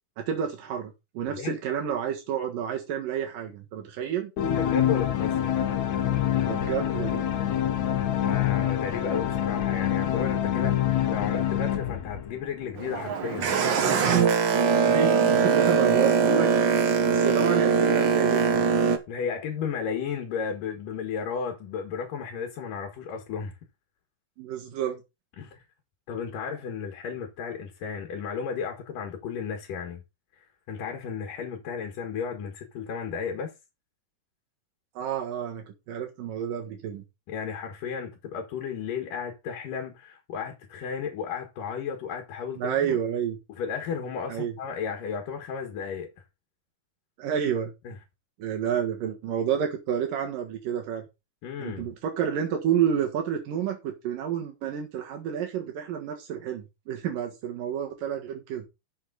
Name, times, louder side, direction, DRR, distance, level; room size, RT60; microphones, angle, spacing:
voice 1, 0.2-4.3 6.4-7.3 14.9-16.5 16.9-18.7 24.4-25.0 35.0-37.0 42.6-43.4 44.3-44.5 47.2-47.7 48.4-51.0 51.6-58.6, right 8 dB, 85° right, 3.2 m, -30 dB
sound 1, 4.4-12.8, left 11 dB, 65° left, 2.6 m, -26 dB
voice 2, 4.6-5.6 8.2-13.5 19.1-23.6 25.4-25.6 26.1-30.0 30.4-33.5 37.3-43.0 43.6-46.1 47.8-48.0 51.4-51.9, left 6 dB, 80° left, 3.4 m, -34 dB
Boat Water vehicle, 12.8-19.0, right 6 dB, 55° right, 1.4 m, -22 dB
12.5 x 6.7 x 4.0 m
omnidirectional pair, 3.8 m